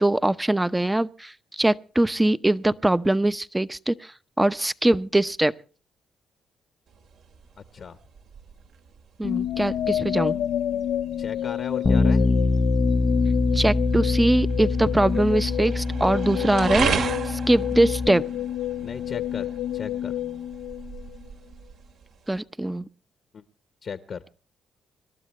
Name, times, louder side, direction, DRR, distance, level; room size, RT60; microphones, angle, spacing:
voice 1, 0.0-5.5 9.2-10.4 13.5-18.2 22.3-22.9, right 1 dB, 10° right, 15 dB, 0.8 m, -22 dB
sound 1, 6.9-22.4, right 6 dB, 70° right, 2.3 m, -36 dB
sound 2, 9.2-21.3, left 11 dB, 80° left, 0.6 m, -29 dB
voice 2, 11.2-12.2 18.8-20.1 23.8-24.2, left 6 dB, 55° left, 11 dB, 1.0 m, -35 dB
Bass guitar, 11.8-18.1, left 3 dB, 30° left, 0.7 m, -24 dB
26.5 x 12.5 x 3.2 m, 0.37 s
cardioid pair, 90°, 0 cm